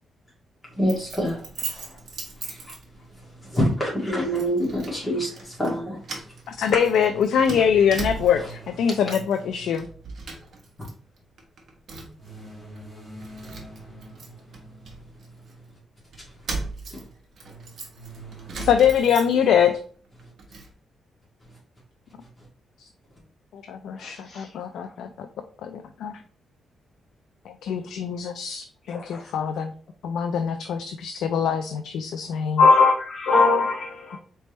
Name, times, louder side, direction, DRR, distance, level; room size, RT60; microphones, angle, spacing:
voice 1, 0.7-1.4 2.4-2.7 3.4-6.0 16.9-17.0, equal, 20° left, -4 dB, 2.0 m, -26 dB
Keys jangling, 0.9-3.2 3.6-3.8 4.4-5.0 5.3-5.8 6.0-8.5 8.8-9.4 9.7-10.9 11.2-12.3 12.8-12.9 13.2-15.5 16.1-19.7 20.0-20.7, right 3 dB, 55° right, 1.1 m, -38 dB
voice 2, 6.5-9.9 18.6-19.8 22.8-22.9 23.5-25.3 25.6-26.2 27.4-29.7 30.0-32.6, left 8 dB, 90° left, 7 dB, 0.3 m, -23 dB
sound 1, 7.0-10.5 12.2-15.3 17.4-19.6, right 3 dB, 10° right, 2.0 m, -44 dB
voice 3, 23.9-24.5 28.9-29.3 32.6-34.2, left 4 dB, 50° left, -3 dB, 0.9 m, -20 dB
4.2 x 3.4 x 3.0 m, 0.44 s
cardioid pair, 125°, 0 cm